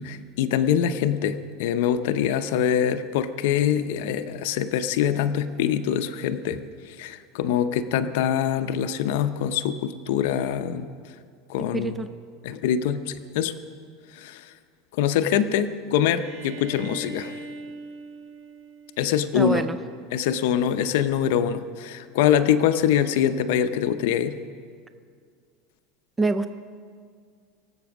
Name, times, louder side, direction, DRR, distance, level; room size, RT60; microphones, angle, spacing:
voice 1, 0.0-10.9 11.5-12.0 12.4-13.5 14.1-14.4 15.0-17.3 19.0-19.6 20.1-24.4, left 9 dB, 70° left, 10 dB, 0.7 m, -24 dB
voice 2, 11.7-12.1 19.3-19.8 26.2-26.5, right 3 dB, 10° right, 10 dB, 0.4 m, -25 dB
Bowed string instrument, 15.9-19.7, right 3 dB, 60° right, 3.3 m, -41 dB
23.0 x 8.0 x 6.0 m, 2.1 s
supercardioid pair, 150°, 0 cm